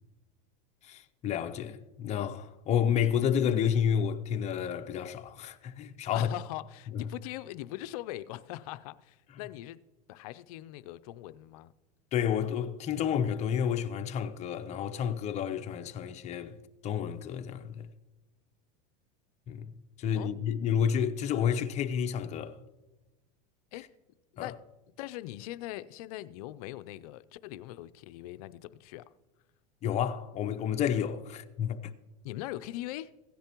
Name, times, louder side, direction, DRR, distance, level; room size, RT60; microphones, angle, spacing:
voice 1, 0.8-6.3 6.9-7.0 12.1-16.6 16.8-17.9 19.5-19.6 20.0-22.6 24.4-24.5 29.8-31.9, left 8 dB, 35° left, 0.8 m, -30 dB
voice 2, 6.1-9.8 10.1-11.7 20.2-20.3 23.7-23.9 24.3-24.6 25.0-29.1 32.2-33.1, left 15 dB, 65° left, 0.5 m, -41 dB
16.5 x 10.0 x 3.0 m
supercardioid pair, 125°, 20 cm